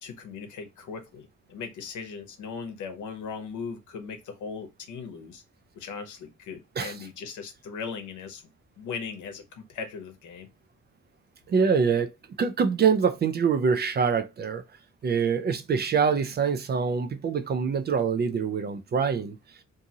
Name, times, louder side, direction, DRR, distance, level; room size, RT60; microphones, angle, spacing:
voice 1, 0.0-5.4 5.7-8.4 8.8-10.5, left 5 dB, 75° left, 0.8 m, -38 dB
voice 2, 11.5-12.1 12.4-14.6 15.0-19.4, right 6 dB, 35° right, 0.4 m, -25 dB
2.6 x 2.5 x 2.7 m
cardioid pair, 90°, 30 cm